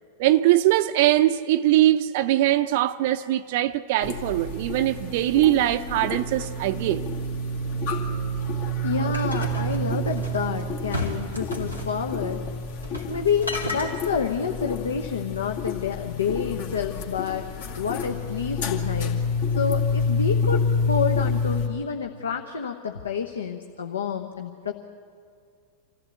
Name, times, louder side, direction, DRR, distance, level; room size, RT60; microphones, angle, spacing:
voice 1, 0.2-7.0, right 14 dB, 50° right, 0.5 m, -21 dB
sound 1, 4.0-21.7, left 2 dB, 55° left, 2.2 m, -28 dB
voice 2, 8.8-12.4 13.0-19.2 19.5-24.7, left 6 dB, 70° left, 1.0 m, -28 dB
sound 2, 9.1-10.4 10.9-11.9 12.8-13.1 13.4-13.9, left 1 dB, 90° left, 3.1 m, -32 dB
26.0 x 15.0 x 8.3 m
figure-of-eight pair, 90°, 0 cm